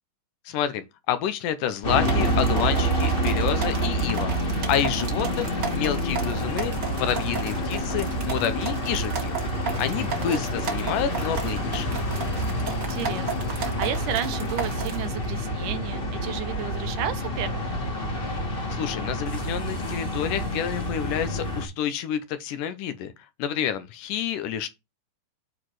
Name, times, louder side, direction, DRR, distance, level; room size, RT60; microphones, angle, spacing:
voice 1, 0.5-4.4 4.7-9.4 9.8-11.9 18.7-23.1 23.4-24.7, left 9 dB, 75° left, 2.3 m, -29 dB
sound 1, 1.8-21.6, equal, 25° left, 1.2 m, -28 dB
sound 2, 2.0-15.1, right 6 dB, 55° right, 1.2 m, -35 dB
voice 2, 5.1-5.5 10.0-10.4 12.9-17.8, right 10 dB, 75° right, 2.3 m, -33 dB
sound 3, 6.4-14.1, left 6 dB, 50° left, 2.2 m, -41 dB
8.7 x 4.1 x 4.7 m
omnidirectional pair, 4.0 m